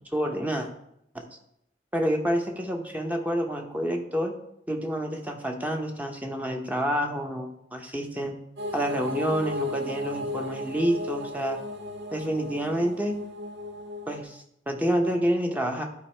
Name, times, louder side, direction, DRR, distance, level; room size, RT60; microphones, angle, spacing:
voice 1, 0.1-0.7 1.1-1.2 1.9-4.3 4.7-8.4 8.7-11.6 12.1-13.2 14.1-15.8, equal, 10° right, 3 dB, 0.8 m, -28 dB
sound 1, 8.6-14.2, left 2 dB, 90° right, 0.9 m, -35 dB
11.5 x 4.6 x 3.3 m, 0.75 s
head